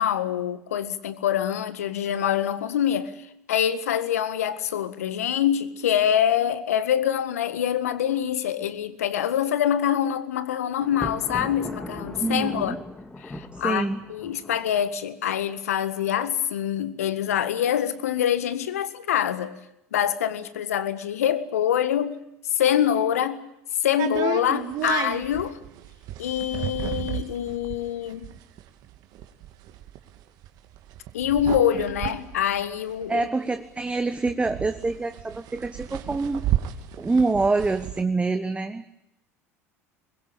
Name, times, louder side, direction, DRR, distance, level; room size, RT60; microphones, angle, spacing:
voice 1, 0.0-12.8 13.2-19.6 19.9-22.2 22.5-23.4 23.8-25.6 26.2-28.3 31.1-33.3, left 10 dB, 75° left, 1.7 m, -25 dB
Thunder, 10.8-14.9, left 2 dB, 15° left, 2.8 m, -38 dB
voice 2, 12.2-12.8 13.6-14.0 33.1-36.5 37.0-38.9, right 3 dB, 15° right, 1.4 m, -26 dB
sound 1, 24.0-33.5 33.8-33.9 34.1-38.0, right 11 dB, 55° right, 2.5 m, -32 dB
24.0 x 22.0 x 8.8 m
figure-of-eight pair, 70°, 8 cm